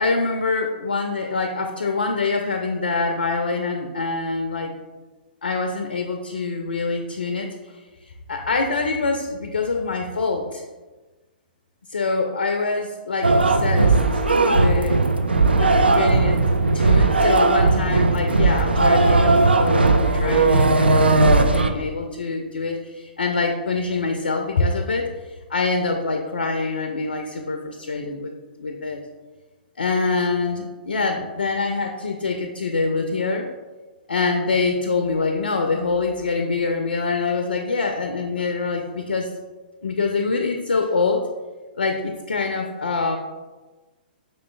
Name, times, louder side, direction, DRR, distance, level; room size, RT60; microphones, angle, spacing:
voice 1, 0.0-4.7 5.4-10.6 11.9-14.2 14.5-15.0 15.3-16.4 16.7-19.8 20.1-21.1 21.5-28.3 28.6-29.0 29.8-33.5 34.1-39.3 39.8-41.3 41.8-43.2, left 4 dB, 70° left, 4 dB, 0.4 m, -25 dB
sound 1, 13.2-21.7, right 3 dB, 80° right, 0.3 m, -17 dB
5.3 x 3.8 x 2.2 m, 1.2 s
figure-of-eight pair, 115°, 5 cm